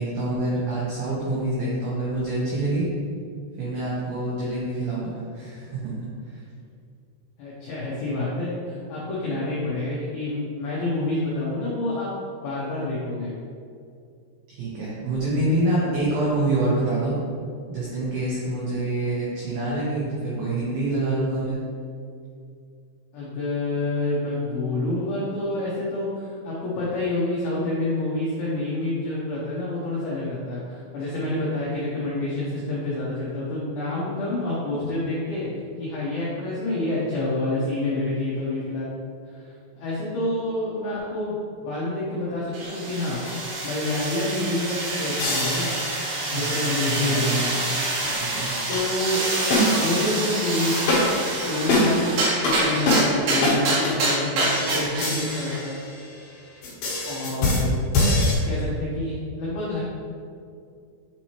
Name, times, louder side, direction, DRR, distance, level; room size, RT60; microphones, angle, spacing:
voice 1, 0.0-2.9 3.6-5.9 6.3-6.4 14.5-17.1 17.7-21.6 46.3-46.5 46.9-47.6 48.2-48.5, right 2 dB, 85° right, -7 dB, 2.0 m, -26 dB
voice 2, 7.4-12.1 12.4-13.3 23.1-35.5 35.8-38.9 39.4-43.3 43.6-45.7 46.3-47.6 48.7-49.2 49.7-51.0 51.4-52.1 52.4-55.8 57.0-57.8 58.4-59.8, left 2 dB, 85° left, -7 dB, 2.2 m, -28 dB
sound 1, 42.5-55.7, right 2 dB, 65° right, 2.9 m, -27 dB
sound 2, 43.3-43.5 45.2-46.4 48.0-48.2 48.7-48.8 49.5-50.1 50.9-51.3 51.7-52.1 52.4-52.6 52.9-53.1 53.4-53.6 53.8-53.9 54.4-56.3 56.6-58.3, left 1 dB, 60° left, 2.6 m, -24 dB
8.6 x 4.4 x 3.0 m, 2.4 s
omnidirectional pair, 5.7 m